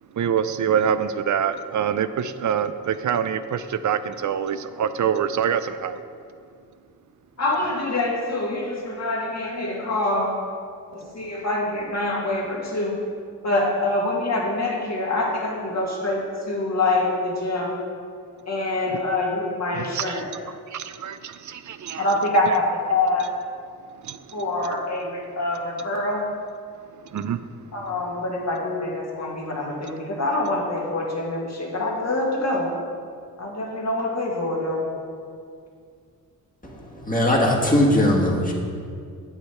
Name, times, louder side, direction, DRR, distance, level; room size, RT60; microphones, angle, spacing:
voice 1, 0.1-6.0 18.9-19.0 19.7-20.2 20.7-22.1 24.0-24.2 27.0-27.4, right 8 dB, 55° right, 12 dB, 0.5 m, -25 dB
voice 2, 7.4-10.4 10.9-13.0 13.4-17.8 18.5-20.3 22.0-23.3 24.3-26.3 27.7-32.7 33.4-34.9, left 2 dB, 45° left, -2 dB, 1.9 m, -25 dB
voice 3, 36.6-38.5, left 1 dB, 20° left, -2 dB, 1.6 m, -20 dB
8.0 x 5.7 x 4.4 m, 2.2 s
cardioid pair, 55°, 37 cm